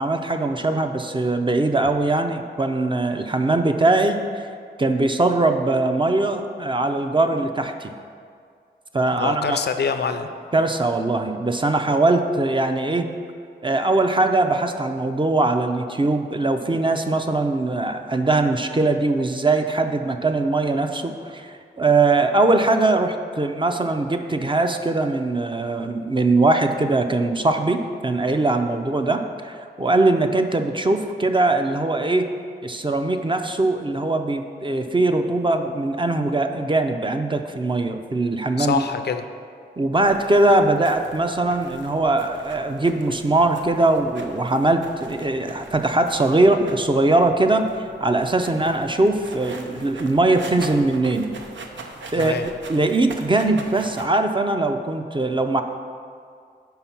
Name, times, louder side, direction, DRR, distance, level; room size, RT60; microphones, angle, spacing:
voice 1, 0.0-4.5 4.8-7.9 8.9-9.6 10.5-13.1 13.6-32.3 32.6-38.8 39.8-47.7 48.0-51.3 52.1-55.6, right 2 dB, 25° right, 6 dB, 0.5 m, -21 dB
voice 2, 9.1-10.3 38.6-39.2 52.2-52.5, left 6 dB, 65° left, 9 dB, 0.4 m, -25 dB
sound 1, 40.0-54.1, right 3 dB, 80° right, 0.6 m, -42 dB
5.6 x 4.6 x 5.7 m, 2.2 s
cardioid pair, 50°, 19 cm